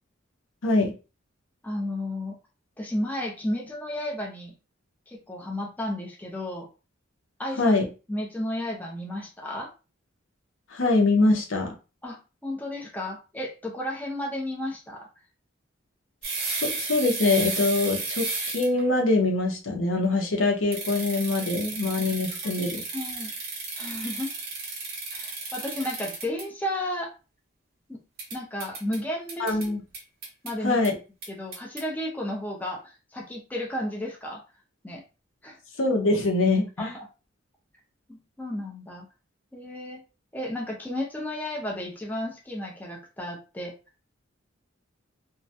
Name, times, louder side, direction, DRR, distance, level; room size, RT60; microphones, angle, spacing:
voice 1, 1.6-2.4 2.8-4.5 5.1-6.7 7.4-7.8 8.1-9.7 12.0-15.1 22.4-22.7 22.9-23.3 23.8-24.3 25.1-27.1 27.9-28.0 28.3-29.6 30.4-30.8 31.3-34.4 34.8-35.0 35.4-35.6 36.8-37.0 38.1-39.1 39.5-40.0 40.3-43.7, left 1 dB, 10° left, -1 dB, 0.4 m, -33 dB
voice 2, 10.7-11.7 16.3-22.8 29.4-29.8 30.6-30.9 35.8-36.9, left 2 dB, 70° left, 2 dB, 0.7 m, -24 dB
sound 1, 16.2-18.8 20.7-26.4 28.2-29.0 29.3-29.7 29.9-30.5 30.8-30.9 31.2-31.8, right 3 dB, 50° right, 0.7 m, -33 dB
2.3 x 2.1 x 2.6 m, 0.32 s
head